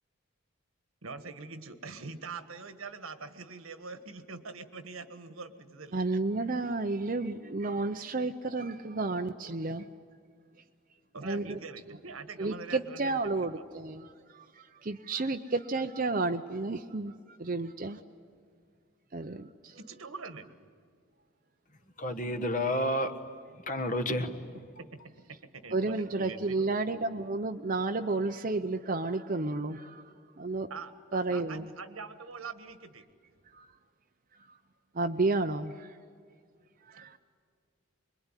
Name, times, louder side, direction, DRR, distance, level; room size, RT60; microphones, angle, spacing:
voice 1, 1.0-6.0 11.1-13.3 13.6-13.7 19.8-20.7 24.8-25.1 25.5-25.9 26.2-26.6 30.7-33.0, right 4 dB, 75° right, 1.5 m, -44 dB
voice 2, 5.9-9.9 11.2-11.6 11.9-12.0 12.4-18.0 19.1-19.8 25.7-30.7 31.1-31.7 33.5-33.7 34.5-34.6 34.9-36.0 36.9-37.2, right 3 dB, 40° right, 0.7 m, -32 dB
voice 3, 22.0-23.1 23.7-24.6, left 1 dB, 35° left, 1.4 m, -30 dB
25.5 x 22.0 x 9.9 m
head